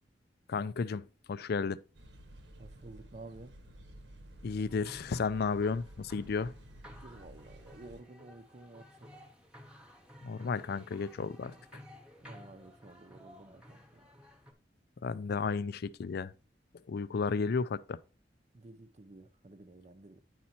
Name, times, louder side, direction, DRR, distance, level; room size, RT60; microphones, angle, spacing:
voice 1, 0.5-1.0 1.3-1.8 4.4-6.5 10.2-11.5 15.0-16.3 16.9-18.0, left 5 dB, 60° left, 0.4 m, -33 dB
sound 1, 1.9-8.0, right 1 dB, 80° right, 1.2 m, -53 dB
voice 2, 2.6-3.6 7.0-9.3 11.4-11.6 12.2-14.1 18.5-20.2, right 2 dB, 40° right, 0.7 m, -52 dB
sound 2, 4.7-14.5, equal, 5° right, 1.1 m, -54 dB
9.5 x 4.2 x 4.3 m
head